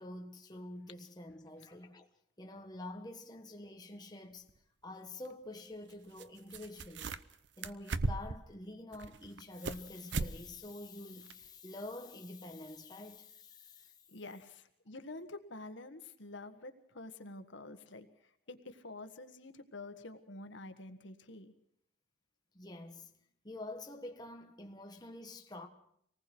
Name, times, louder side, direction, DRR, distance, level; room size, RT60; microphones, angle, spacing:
voice 1, 0.0-2.1 2.4-4.5 4.8-7.2 7.6-13.9 22.5-23.1 23.4-25.7, left 2 dB, 20° left, 1.4 m, -47 dB
sound 1, 4.5-4.6 6.2-6.3 6.5-7.3 7.6-8.4 8.9-9.8 10.1-10.4 10.7-10.8 11.3-11.4, right 3 dB, 65° right, 0.8 m, -36 dB
voice 2, 14.1-21.5, left 2 dB, 75° left, 1.6 m, -48 dB
26.0 x 19.5 x 6.2 m
head